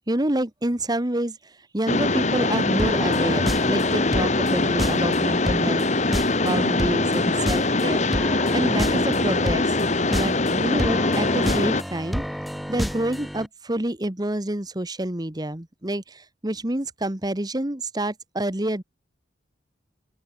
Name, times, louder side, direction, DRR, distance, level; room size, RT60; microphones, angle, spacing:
voice 1, 0.1-5.9 6.4-9.8 10.1-12.2 12.7-18.8, right 1 dB, 20° right, 1.4 m, -28 dB
Mechanisms, 1.9-11.8, left 2 dB, 40° left, 1.8 m, -22 dB
sound 1, 2.8-13.5, equal, ahead, 1.3 m, -31 dB
sound 2, 3.4-6.4 6.8-7.3 7.6-7.7, right 1 dB, 75° right, 3.0 m, -43 dB
open air
head